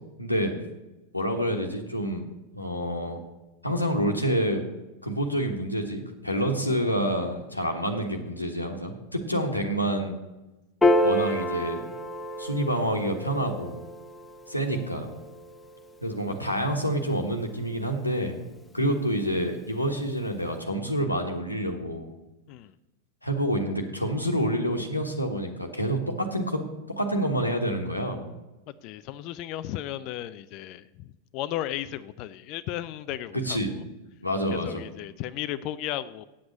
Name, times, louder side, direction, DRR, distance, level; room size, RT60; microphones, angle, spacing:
voice 1, 0.2-0.5 1.1-2.2 2.5-3.2 3.6-4.6 5.0-10.1 11.0-11.8 12.4-13.8 14.5-15.1 16.0-18.4 18.7-22.1 23.2-26.7 27.0-28.3 33.4-33.7 34.2-34.8, equal, 85° left, 2 dB, 1.3 m, -28 dB
Piano, 10.8-17.4, left 1 dB, 10° left, 1.1 m, -29 dB
voice 2, 28.8-33.8 34.5-36.2, left 13 dB, 40° left, 13 dB, 0.4 m, -35 dB
8.6 x 7.8 x 8.2 m, 1.0 s
figure-of-eight pair, 90°, 0 cm